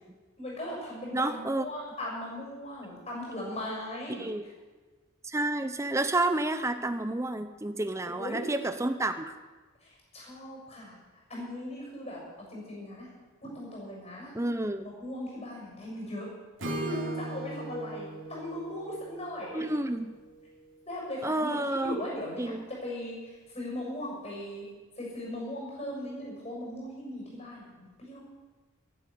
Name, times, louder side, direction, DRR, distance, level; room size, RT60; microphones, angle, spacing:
voice 1, 0.4-4.3 8.1-8.5 9.8-10.9 11.3-12.2 12.5-13.1 13.4-14.3 14.8-16.3 16.6-19.7 20.9-21.6 21.8-22.5 22.8-24.6 25.0-28.2, left 1 dB, 30° left, -3 dB, 6.7 m, -38 dB
voice 2, 1.1-1.7 4.1-4.4 5.2-9.4 14.3-14.9 19.5-20.1 21.2-22.0 22.4-22.6, right 2 dB, 15° right, 9 dB, 0.7 m, -30 dB
Acoustic guitar / Strum, 16.6-20.6, right 1 dB, 65° right, 2.9 m, -39 dB
13.5 x 12.0 x 8.4 m, 1.3 s
head